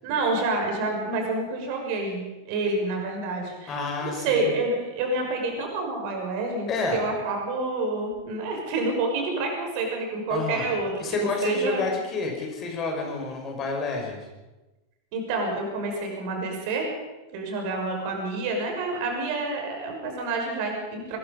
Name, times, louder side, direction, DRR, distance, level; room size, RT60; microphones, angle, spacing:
voice 1, 0.0-3.8 4.0-11.8 15.1-16.9 17.3-21.2, right 3 dB, 45° right, 2 dB, 6.1 m, -28 dB
voice 2, 3.7-4.6 6.7-7.0 10.3-10.7 11.0-14.3, left 4 dB, 30° left, 2 dB, 5.7 m, -29 dB
23.0 x 21.5 x 5.4 m, 1.1 s
figure-of-eight pair, 90°, 0 cm